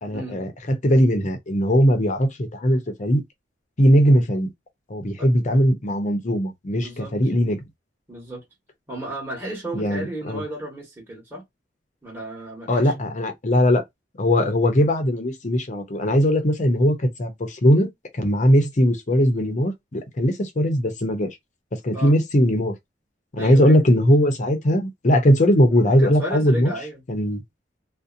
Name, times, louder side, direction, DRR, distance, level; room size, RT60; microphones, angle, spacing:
voice 1, 0.0-3.2 3.8-4.5 4.9-7.6 9.7-10.4 12.7-13.8 14.2-17.9 18.1-21.3 21.8-22.7 23.3-26.7 27.1-27.4, equal, 40° left, 0.7 m, -19 dB
voice 2, 6.8-7.1 8.1-8.4 8.9-11.4 12.0-12.9 21.9-22.2 23.4-23.8 26.0-27.0, right 1 dB, 10° right, 1.2 m, -34 dB
2.7 x 2.1 x 2.5 m
head